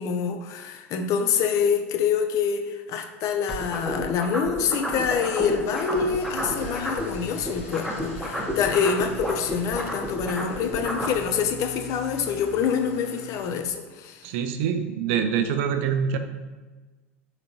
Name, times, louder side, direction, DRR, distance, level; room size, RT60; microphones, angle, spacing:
voice 1, 0.0-14.3, left 6 dB, 45° left, 6 dB, 0.5 m, -26 dB
sound 1, 3.5-7.2 7.4-11.2, equal, ahead, 0.8 m, -30 dB
Engine starting / Idling, 5.0-13.5, left 3 dB, 70° left, 0.9 m, -42 dB
voice 2, 14.2-16.2, right 7 dB, 60° right, 7 dB, 0.4 m, -25 dB
3.8 x 3.4 x 3.0 m, 1.2 s
figure-of-eight pair, 80°, 8 cm